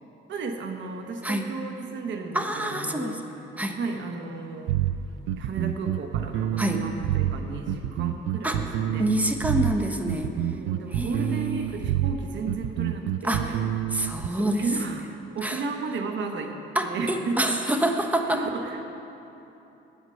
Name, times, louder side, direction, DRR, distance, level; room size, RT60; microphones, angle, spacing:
voice 1, 0.3-3.3 3.8-4.8 5.4-9.1 10.5-13.6 14.2-17.6 18.3-19.1, right 4 dB, 70° right, 5 dB, 1.2 m, -34 dB
voice 2, 2.3-3.2 3.6-3.8 6.6-6.8 8.4-8.6 9.0-10.3 10.9-11.7 13.2-13.6 13.9-14.6 15.4-15.6 16.7-18.4, right 1 dB, 10° right, 5 dB, 1.1 m, -27 dB
sound 1, 4.7-14.3, right 12 dB, 90° right, 0.4 m, -28 dB
9.1 x 8.1 x 9.1 m, 2.9 s
cardioid pair, 90°, 20 cm